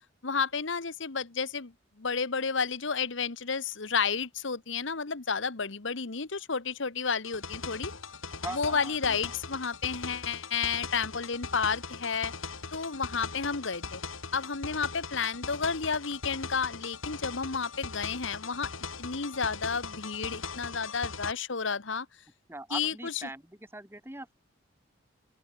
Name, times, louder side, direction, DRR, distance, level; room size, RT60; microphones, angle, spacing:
voice 1, 0.2-1.7 2.0-7.9 8.5-12.3 12.7-14.0 14.3-18.7 19.0-22.1 22.7-23.2, left 5 dB, 70° left, 1.2 m, -31 dB
sound 1, 7.2-21.3, left 4 dB, 85° left, 3.1 m, -40 dB
voice 2, 8.4-9.3 22.5-23.4 23.7-24.3, right 2 dB, 10° right, 1.5 m, -41 dB
open air
head